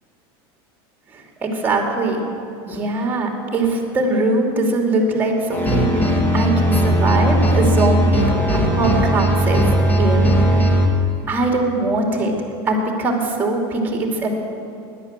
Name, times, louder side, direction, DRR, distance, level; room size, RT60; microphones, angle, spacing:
voice 1, 1.4-2.3 2.7-10.6 11.3-12.3 12.7-14.3, right 2 dB, 15° right, 1 dB, 2.8 m, -21 dB
sound 1, 5.5-10.9, equal, 15° left, 1.8 m, -17 dB
16.5 x 11.0 x 7.6 m, 2.7 s
supercardioid pair, 145°, 13 cm